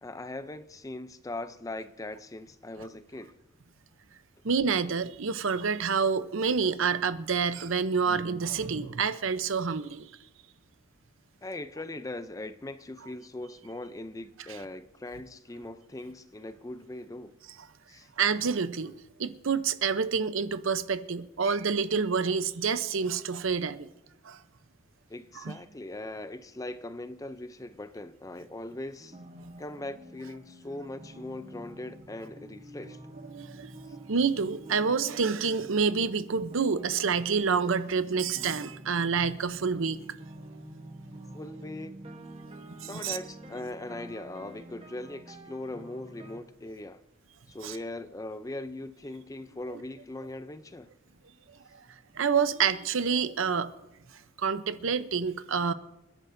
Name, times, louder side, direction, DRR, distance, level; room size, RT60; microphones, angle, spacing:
voice 1, 0.0-3.3 11.4-17.3 17.9-18.1 25.1-29.2 29.6-33.0 33.9-34.0 41.3-42.0 42.9-47.0 47.5-50.9, left 2 dB, 15° left, 0.4 m, -40 dB
voice 2, 4.4-10.1 14.5-14.6 18.2-18.9 19.2-23.9 24.2-24.4 25.3-25.6 29.4-29.5 33.3-40.0 42.7-43.2 47.6-47.8 52.1-53.7 54.4-55.7, right 5 dB, 70° right, 0.7 m, -28 dB
sound 1, 29.0-46.4, right 1 dB, 25° right, 1.1 m, -48 dB
29.0 x 11.0 x 2.6 m
head